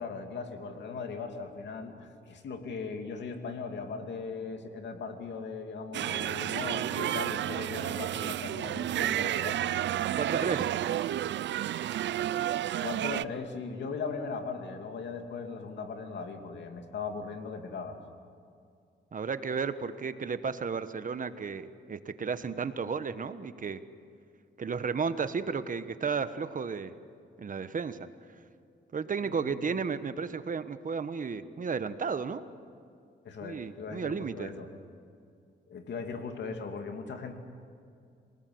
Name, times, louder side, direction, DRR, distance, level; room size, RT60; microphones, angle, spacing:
voice 1, 0.0-9.6 12.3-18.0 29.2-29.7 33.2-34.7 35.7-37.3, left 5 dB, 75° left, 5 dB, 2.7 m, -39 dB
sound 1, 5.9-13.2, right 12 dB, 75° right, 0.5 m, -31 dB
voice 2, 10.1-10.7 19.1-23.8 24.6-26.9 27.4-28.0 28.9-32.4 33.4-34.5, right 5 dB, 45° right, 11 dB, 1.2 m, -33 dB
27.5 x 19.0 x 7.9 m, 2.4 s
cardioid pair, 90°, 19 cm